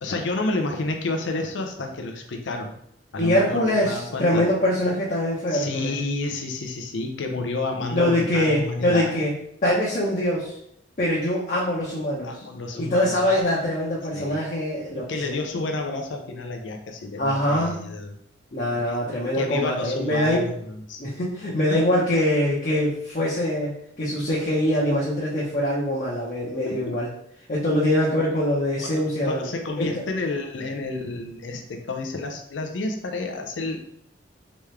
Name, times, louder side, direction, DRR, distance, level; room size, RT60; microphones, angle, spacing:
voice 1, 0.0-2.7 3.1-4.4 5.5-9.2 12.2-13.2 14.1-14.4 14.9-18.1 18.7-19.0 19.3-21.0 21.7-21.8 26.6-27.0 28.8-33.8, left 2 dB, 80° left, 4 dB, 0.5 m, -30 dB
voice 2, 3.2-5.9 7.9-9.3 9.6-10.5 11.0-12.3 12.7-15.4 17.2-17.8 18.5-20.5 21.0-27.1 27.5-29.5 29.8-29.9, left 1 dB, 45° left, -7 dB, 0.9 m, -23 dB
3.5 x 3.1 x 3.2 m, 0.72 s
head